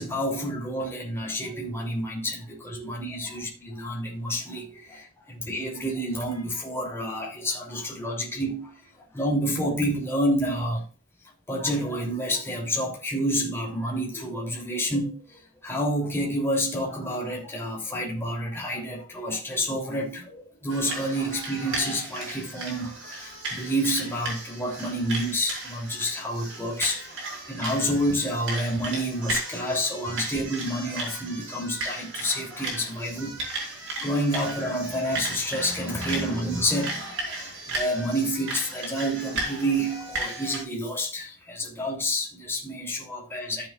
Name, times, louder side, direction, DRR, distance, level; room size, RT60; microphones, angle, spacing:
voice 1, 0.0-10.8 11.5-22.9 23.2-27.0 27.5-33.4 34.0-37.2 37.7-43.7, equal, 10° left, 3.1 m, -29 dB
sound 1, 20.7-40.6, right 2 dB, 60° right, 4.7 m, -35 dB
14.0 x 7.6 x 2.4 m
head